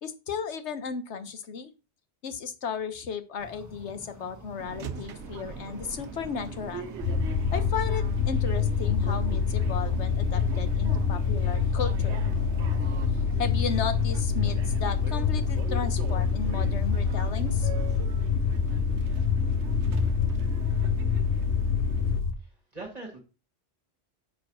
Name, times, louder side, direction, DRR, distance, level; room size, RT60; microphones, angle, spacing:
voice 1, 0.0-1.7 2.2-6.8 7.5-12.2 13.4-17.7, left 6 dB, 90° left, 10 dB, 1.3 m, -34 dB
sound 1, 3.4-18.0, right 1 dB, 15° right, 1.5 m, -46 dB
sound 2, 4.6-22.2, right 6 dB, 90° right, 1.0 m, -41 dB
sound 3, 7.0-22.3, left 6 dB, 60° left, 1.0 m, -26 dB
voice 2, 22.4-23.2, right 2 dB, 35° right, -1 dB, 1.9 m, -42 dB
7.0 x 4.7 x 6.2 m, 0.32 s
omnidirectional pair, 1.1 m